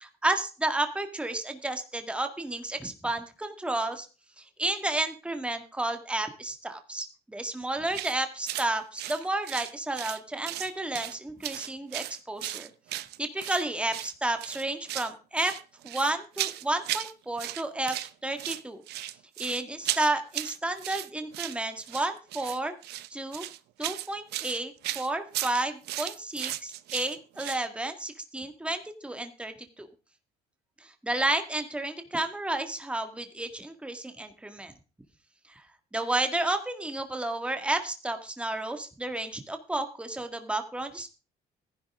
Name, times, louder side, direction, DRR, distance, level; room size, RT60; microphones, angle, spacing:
voice 1, 0.0-4.1 4.4-12.7 13.2-15.5 15.8-18.8 19.4-22.7 23.1-23.5 23.8-29.9 30.8-34.7 35.5-35.7 35.9-41.1, right 2 dB, 5° right, 6 dB, 1.9 m, -31 dB
sound 1, 7.9-8.2 8.5-8.7 9.0-10.2 10.4-11.2 11.4-13.6 13.9-14.1 14.4-15.1 15.4-17.1 17.4-18.1 18.4-27.6, right 15 dB, 75° right, 0.8 m, -35 dB
14.5 x 11.0 x 3.7 m, 0.33 s
cardioid pair, 110°, 17 cm